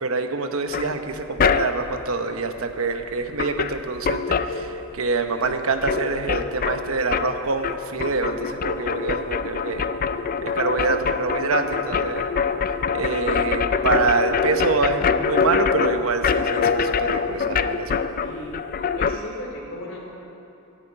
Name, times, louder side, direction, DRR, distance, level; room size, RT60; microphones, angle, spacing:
voice 1, 0.0-9.9 10.4-12.3 12.9-18.0, right 3 dB, 90° right, 7 dB, 1.0 m, -26 dB
sound 1, 0.7-2.0 3.0-3.1 3.3-5.2 5.4-19.2, left 5 dB, 45° left, 0.4 m, -25 dB
voice 2, 18.2-18.6 19.0-20.1, left 1 dB, 70° left, -1 dB, 2.9 m, -35 dB
10.5 x 10.5 x 8.8 m, 2.8 s
head